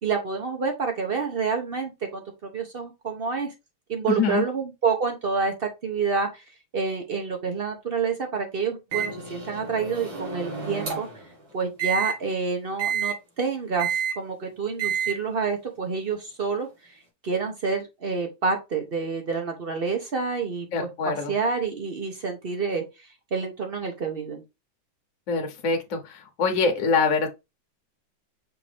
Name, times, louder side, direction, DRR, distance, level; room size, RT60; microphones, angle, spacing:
voice 1, 0.0-3.5 3.9-6.4 6.7-11.1 11.5-16.9 17.2-22.8 23.3-24.4, right 5 dB, 55° right, 0.6 m, -28 dB
voice 2, 4.1-4.4 20.7-21.3 25.3-27.3, left 4 dB, 50° left, 1.1 m, -24 dB
Microwave oven, 8.9-11.2 11.8-12.1 12.8-13.1 13.8-14.2 14.8-15.1, right 7 dB, 75° right, 2.4 m, -29 dB
5.9 x 2.6 x 3.4 m
omnidirectional pair, 2.2 m